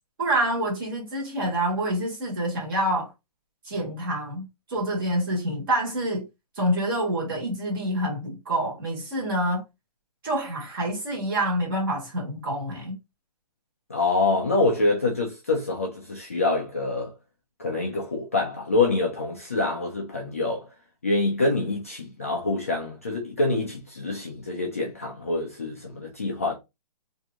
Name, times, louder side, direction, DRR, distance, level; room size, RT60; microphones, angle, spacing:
voice 1, 0.2-3.1 3.6-6.2 6.6-9.6 10.2-13.0, right 1 dB, 35° right, 1.5 m, -27 dB
voice 2, 13.9-17.1 17.6-20.7 21.0-26.6, left 3 dB, 20° left, 0.3 m, -26 dB
2.9 x 2.6 x 3.3 m
hypercardioid pair, 175°, 21 cm